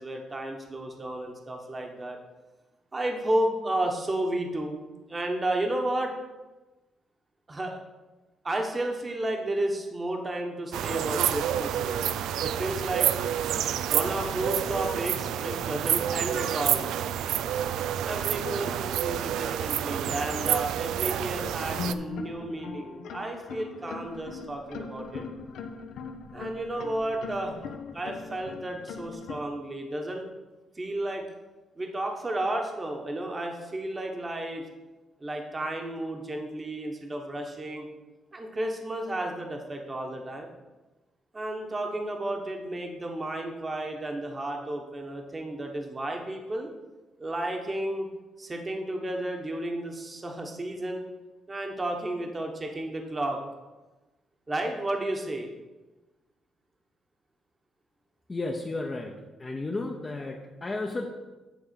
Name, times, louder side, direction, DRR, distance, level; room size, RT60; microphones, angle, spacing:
voice 1, 0.0-2.2 2.9-4.8 5.1-6.1 7.5-7.8 8.4-12.1 12.4-13.1 13.9-16.9 18.1-25.2 26.3-27.6 27.9-30.3 30.7-31.3 31.8-34.7 35.2-37.9 38.3-40.5 41.3-46.7 47.2-48.1 48.4-51.1 51.5-53.4 54.5-55.5, right 1 dB, 25° right, 2 dB, 1.3 m, -32 dB
sound 1, 10.7-21.9, right 10 dB, 85° right, 0.3 m, -28 dB
sound 2, 21.7-29.4, left 5 dB, 75° left, 0.8 m, -40 dB
voice 2, 58.3-59.1 59.4-61.1, left 2 dB, 25° left, 0 dB, 0.8 m, -33 dB
9.4 x 3.5 x 6.9 m, 1.1 s
cardioid pair, 90°, 0 cm